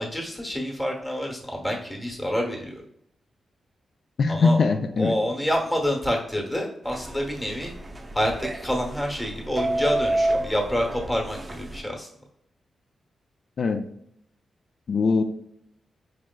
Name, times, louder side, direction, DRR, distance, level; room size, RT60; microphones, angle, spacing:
voice 1, 0.0-2.8 4.3-4.6 5.0-7.7 8.1-12.1, equal, 10° left, 1 dB, 1.0 m, -27 dB
voice 2, 4.2-5.2 13.6-13.8 14.9-15.2, left 4 dB, 60° left, 7 dB, 0.4 m, -21 dB
sound 1, 6.8-11.8, right 1 dB, 25° right, 0.5 m, -30 dB
4.8 x 3.2 x 2.2 m, 0.73 s
cardioid pair, 90°, 0 cm